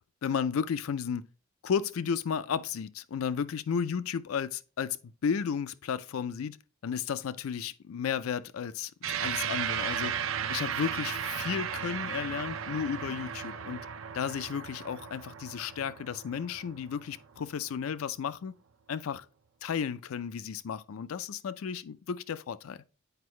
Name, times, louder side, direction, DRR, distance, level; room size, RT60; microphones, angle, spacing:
voice 1, 0.2-1.2 1.6-6.6 6.8-10.2 10.5-13.9 14.1-18.5 18.9-19.3 19.6-22.8, left 7 dB, 85° left, 0.4 m, -33 dB
sound 1, 9.0-17.7, right 8 dB, 70° right, 0.6 m, -35 dB
8.0 x 4.6 x 3.1 m
head